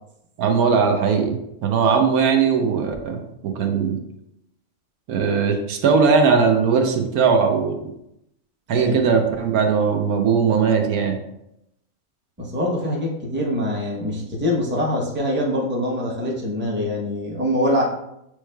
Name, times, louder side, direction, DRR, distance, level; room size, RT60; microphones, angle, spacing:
voice 1, 0.4-1.3 1.6-4.0 5.1-7.8 8.7-11.2, right 5 dB, 80° right, 4 dB, 1.1 m, -19 dB
voice 2, 8.7-9.1 12.4-17.8, left 1 dB, 10° right, -3 dB, 0.6 m, -24 dB
7.3 x 3.2 x 2.2 m, 0.82 s
omnidirectional pair, 1.5 m